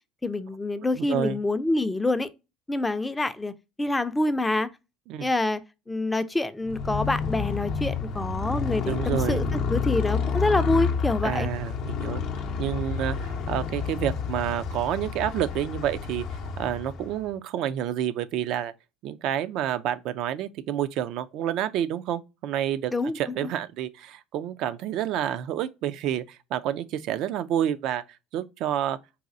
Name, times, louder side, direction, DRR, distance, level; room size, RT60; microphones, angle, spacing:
voice 1, 0.2-2.3 2.7-3.5 3.8-4.7 5.2-5.6 5.9-11.5 22.9-23.5, left 2 dB, 15° left, 0.4 m, -26 dB
voice 2, 1.0-1.4 5.1-5.3 8.9-9.4 11.2-12.2 12.6-18.7 19.0-28.0 28.3-29.0, right 10 dB, 60° right, 0.3 m, -29 dB
Motorcycle, 6.6-17.3, left 5 dB, 60° left, 0.6 m, -29 dB
4.1 x 2.3 x 2.5 m
hypercardioid pair, 70°, 0 cm